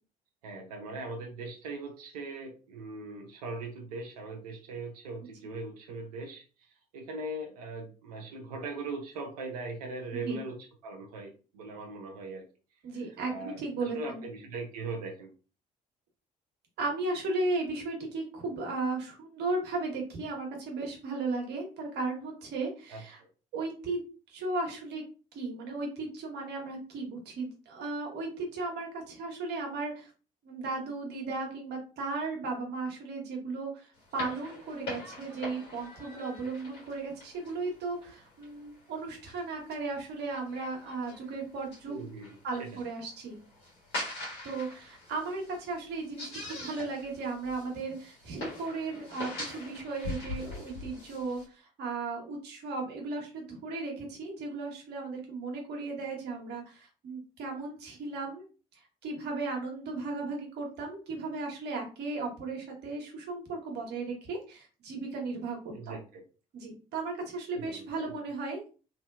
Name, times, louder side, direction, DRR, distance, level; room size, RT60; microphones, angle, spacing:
voice 1, 0.4-6.4 6.9-10.6 10.8-12.4 13.3-15.3 22.9-23.3 41.9-42.7 65.7-66.2 67.6-67.8, right 3 dB, 80° right, 2 dB, 0.6 m, -40 dB
voice 2, 12.8-14.2 16.8-23.2 23.5-24.0 24.3-25.0 25.3-30.1 30.4-33.9 34.1-42.0 42.4-43.4 44.4-58.4 59.0-66.0 66.5-68.6, right 3 dB, 60° right, 1 dB, 1.1 m, -36 dB
sound 1, 34.0-51.4, left 2 dB, 60° left, 1.6 m, -43 dB
3.0 x 2.7 x 2.4 m, 0.35 s
figure-of-eight pair, 50°, 19 cm